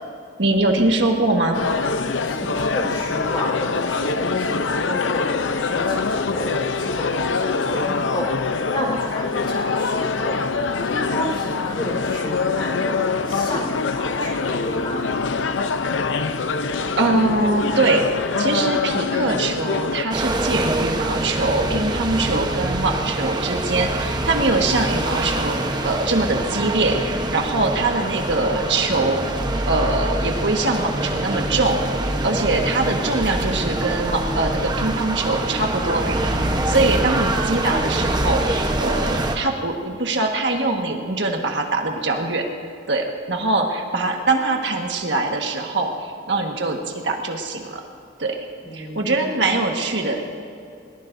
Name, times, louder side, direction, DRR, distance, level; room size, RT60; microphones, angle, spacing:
voice 1, 0.4-1.6 17.0-18.1 18.4-29.3 29.7-42.5 42.9-47.8 48.2-48.4 48.7-50.2, right 2 dB, 70° right, 2 dB, 1.5 m, -23 dB
sound 1, 1.5-20.0, left 4 dB, 85° left, 0.7 m, -24 dB
voice 2, 2.2-12.9 13.2-15.0 48.6-49.4, equal, 25° left, -1 dB, 4.6 m, -31 dB
sound 2, 20.1-39.4, right 1 dB, 25° right, 1.0 m, -24 dB
21.0 x 20.0 x 2.7 m, 2.4 s
head